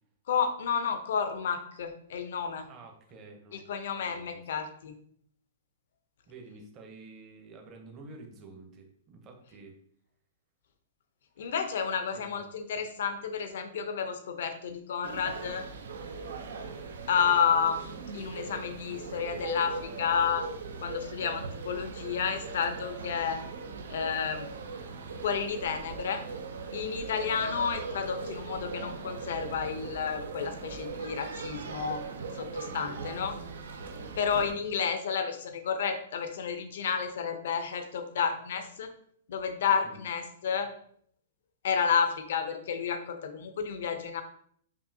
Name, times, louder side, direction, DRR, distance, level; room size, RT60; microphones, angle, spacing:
voice 1, 0.3-2.7 3.5-4.9 11.4-15.6 17.1-20.4 20.8-23.4 23.9-24.5 25.2-26.2 26.7-32.0 32.3-33.4 34.2-38.9 39.3-40.7 41.6-44.2, left 6 dB, 70° left, 8 dB, 0.6 m, -31 dB
voice 2, 2.7-3.7 3.9-4.4 6.3-9.8 12.1-12.4 27.4-27.6 34.3-34.5 39.8-40.0, right 3 dB, 25° right, 2 dB, 0.8 m, -49 dB
sound 1, 15.0-34.5, right 4 dB, 85° right, 0.5 m, -40 dB
5.3 x 2.7 x 2.7 m, 0.65 s
hypercardioid pair, 155°, 0 cm